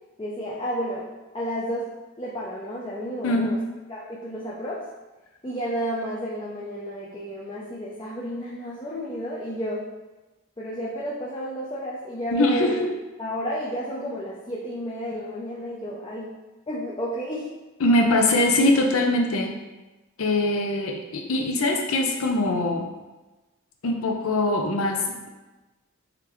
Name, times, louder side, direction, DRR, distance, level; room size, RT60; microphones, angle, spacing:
voice 1, 0.2-1.9 2.2-3.6 3.9-4.8 5.4-9.9 10.6-12.8 13.2-16.3 16.7-17.5, equal, 20° left, -6 dB, 0.5 m, -31 dB
voice 2, 3.2-3.5 12.3-12.9 17.8-19.6 20.2-22.9 23.8-25.3, left 2 dB, 80° left, 2 dB, 0.6 m, -22 dB
3.7 x 3.3 x 3.0 m, 1.1 s
head